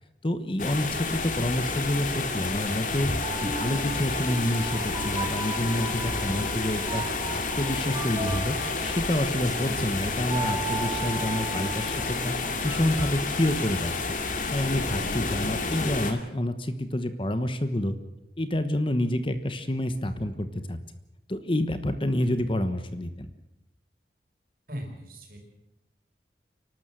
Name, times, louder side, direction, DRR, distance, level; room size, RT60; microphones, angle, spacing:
voice 1, 0.2-3.1 3.4-7.0 7.3-8.6 8.8-12.4 12.6-14.1 14.5-18.0 18.4-20.8 21.3-23.3, left 1 dB, 30° left, 10 dB, 1.1 m, -28 dB
sound 1, 0.6-16.1, left 3 dB, 45° left, 2.4 m, -30 dB
sound 2, 3.2-14.1, right 5 dB, 20° right, 3.7 m, -38 dB
voice 2, 24.7-25.4, right 1 dB, 50° right, 2 dB, 5.4 m, -39 dB
29.5 x 12.5 x 7.7 m, 0.95 s
head